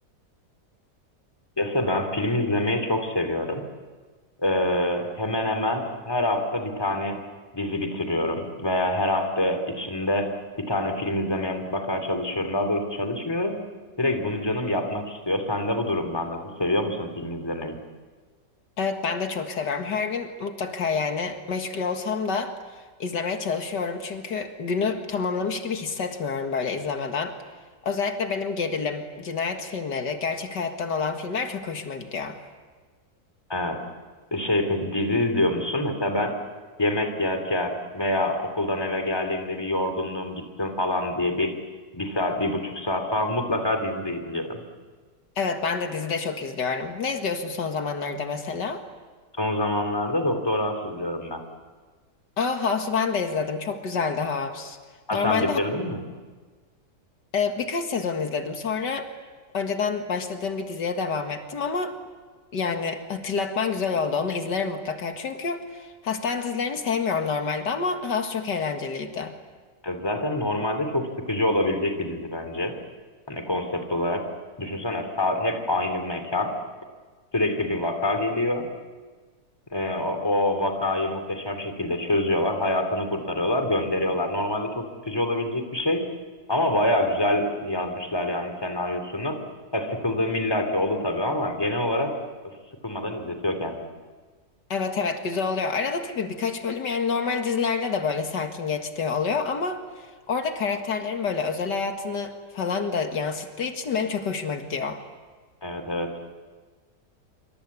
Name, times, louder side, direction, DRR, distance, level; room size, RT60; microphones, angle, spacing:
voice 1, 1.6-3.6 4.4-7.2 7.5-10.3 10.6-13.6 14.0-17.8 33.5-33.8 34.3-36.3 36.8-41.5 41.9-44.6 49.4-51.4 55.1-56.0 69.8-72.7 73.3-74.2 74.6-76.5 77.3-78.7 79.7-86.0 86.5-89.4 89.7-92.1 92.8-93.9 105.6-106.1, left 1 dB, 15° left, 6 dB, 2.9 m, -26 dB
voice 2, 18.8-27.3 27.8-32.4 45.4-48.8 52.4-54.8 55.1-55.6 57.3-59.1 59.5-61.9 62.5-69.3 94.7-105.0, left 5 dB, 85° left, 6 dB, 2.4 m, -28 dB
25.5 x 25.5 x 8.5 m, 1.4 s
omnidirectional pair, 1.8 m